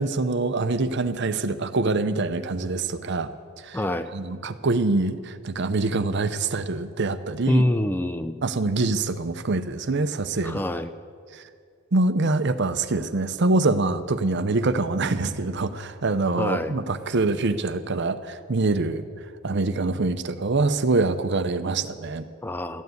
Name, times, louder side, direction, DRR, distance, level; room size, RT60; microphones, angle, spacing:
voice 1, 0.0-3.3 3.6-3.8 4.1-7.6 8.4-10.6 11.3-11.5 11.9-19.0 19.4-22.3, right 3 dB, 55° right, 11 dB, 0.7 m, -25 dB
voice 2, 3.7-4.1 7.5-8.4 10.4-10.9 16.4-16.7 22.4-22.8, left 1 dB, 10° left, 10 dB, 0.4 m, -25 dB
13.5 x 9.3 x 9.4 m, 2.3 s
head